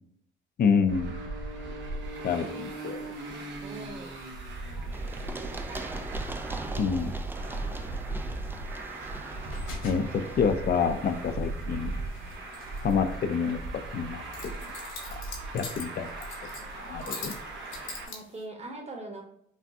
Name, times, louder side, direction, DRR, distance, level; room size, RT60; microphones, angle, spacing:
voice 1, 0.6-1.1 2.2-3.1 6.8-7.1 9.8-10.1 10.4-11.9 12.8-13.6 13.9-14.2 14.6-14.7 15.5-16.1 16.9-17.3, left 6 dB, 50° left, 9 dB, 0.5 m, -27 dB
Traffic noise roadway noise, 0.9-18.1, right 2 dB, 70° right, 1.0 m, -37 dB
sound 1, 2.4-18.4, left 4 dB, 85° left, 1.1 m, -48 dB
voice 2, 3.6-4.2 4.7-6.2 11.2-11.5 18.0-19.2, right 2 dB, 30° right, 2 dB, 1.2 m, -43 dB
Run, 4.9-12.6, right 2 dB, 10° right, 0.4 m, -42 dB
5.9 x 2.2 x 2.7 m, 0.69 s
cardioid pair, 90°, 20 cm